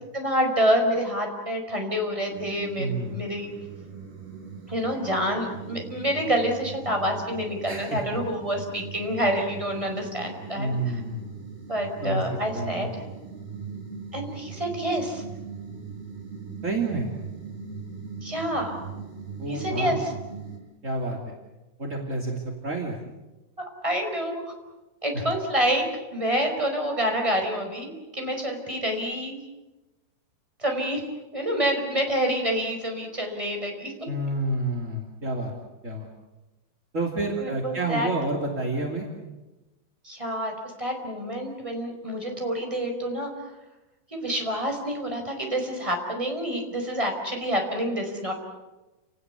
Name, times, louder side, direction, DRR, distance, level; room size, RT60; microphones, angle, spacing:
voice 1, 0.1-3.5 4.7-11.0 11.7-12.9 14.1-15.2 18.2-18.8 19.5-20.0 23.8-24.4 25.0-25.9 26.1-29.4 30.6-31.0 31.3-33.9 37.4-38.1 40.0-40.5 40.8-43.3 44.1-48.3, equal, 5° right, 2 dB, 4.4 m, -27 dB
sound 1, 2.3-20.6, right 5 dB, 55° right, 6.5 m, -40 dB
voice 2, 2.8-3.2 7.6-8.0 10.5-11.2 12.0-12.2 12.5-12.9 16.6-17.1 19.4-20.0 20.8-21.3 21.8-23.0 25.1-25.3 34.1-35.5 35.8-36.1 36.9-39.1, right 2 dB, 25° right, 0 dB, 1.7 m, -29 dB
30.0 x 19.0 x 8.2 m, 1.1 s
omnidirectional pair, 5.9 m